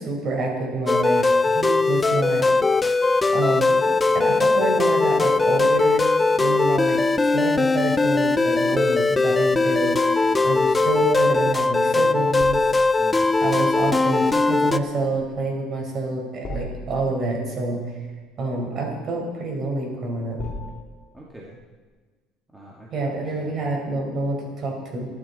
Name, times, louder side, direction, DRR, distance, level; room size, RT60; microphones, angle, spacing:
voice 1, 0.0-2.5 3.3-3.8 4.1-12.7 13.4-17.8 18.4-20.4 22.9-25.1, right 2 dB, 40° right, 1 dB, 4.4 m, -27 dB
sound 1, 0.9-14.8, left 3 dB, 15° left, 0.5 m, -20 dB
sound 2, 12.4-21.9, left 1 dB, 35° left, 2.7 m, -42 dB
voice 2, 13.0-13.4 21.1-21.5 22.5-23.8, right 1 dB, 10° right, -3 dB, 1.8 m, -43 dB
22.5 x 12.0 x 4.1 m, 1.4 s
cardioid pair, 145°, 0 cm